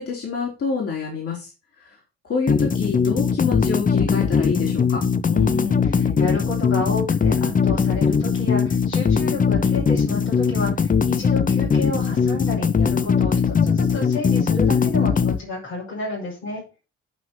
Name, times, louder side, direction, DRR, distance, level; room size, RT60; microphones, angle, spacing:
voice 1, 0.0-1.5 2.2-5.0, left 5 dB, 45° left, -1 dB, 3.4 m, -27 dB
sound 1, 2.5-15.4, left 6 dB, 25° left, 0.7 m, -20 dB
voice 2, 5.3-16.6, left 3 dB, 80° left, -4 dB, 6.0 m, -30 dB
9.3 x 5.8 x 6.0 m, 0.30 s
figure-of-eight pair, 40°, 32 cm